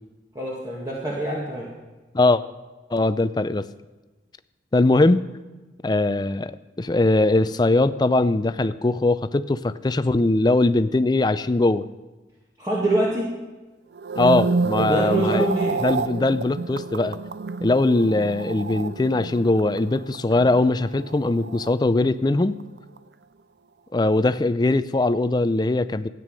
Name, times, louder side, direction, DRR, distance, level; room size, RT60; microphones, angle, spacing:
voice 1, 0.3-1.7 12.6-13.3 14.8-15.8, right 1 dB, 20° right, -6 dB, 2.0 m, -24 dB
voice 2, 2.9-3.7 4.7-5.3 5.8-11.9 14.2-15.5 15.8-17.2 17.6-22.6 23.9-26.1, left 2 dB, 25° left, 13 dB, 0.4 m, -21 dB
sound 1, 13.9-22.3 22.6-23.0, right 4 dB, 65° right, 0.5 m, -29 dB
14.0 x 9.3 x 6.4 m, 1.2 s
head